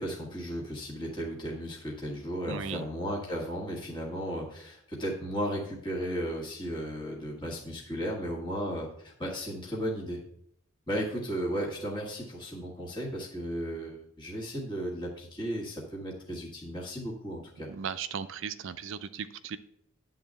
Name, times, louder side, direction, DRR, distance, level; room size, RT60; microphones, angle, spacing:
voice 1, 0.0-10.2 10.9-17.7, equal, 20° left, -3 dB, 1.6 m, -35 dB
voice 2, 2.5-2.8 17.7-19.6, right 6 dB, 60° right, 12 dB, 0.5 m, -37 dB
10.0 x 3.9 x 7.5 m, 0.71 s
head